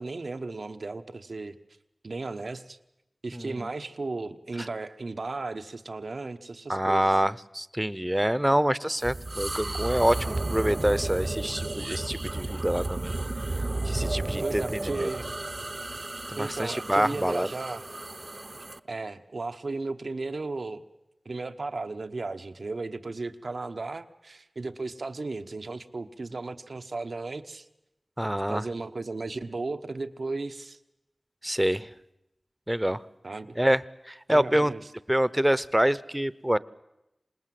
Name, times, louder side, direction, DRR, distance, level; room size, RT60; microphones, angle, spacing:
voice 1, 0.0-1.6 2.0-2.8 3.2-7.1 14.4-15.3 16.4-17.9 18.9-20.8 21.2-27.7 28.5-30.8 33.2-33.5 34.3-34.8, right 3 dB, 85° right, 8 dB, 1.1 m, -35 dB
voice 2, 3.3-3.7 4.6-4.7 6.7-13.1 13.8-15.1 16.3-17.5 28.2-28.6 31.4-31.9 32.7-33.0 33.6-33.8 34.1-34.7 35.1-36.6, right 1 dB, 10° right, 17 dB, 0.8 m, -26 dB
sound 1, 9.0-18.8, right 2 dB, 50° right, 0.8 m, -33 dB
26.5 x 19.5 x 7.7 m, 0.88 s
wide cardioid pair, 50°, 0 cm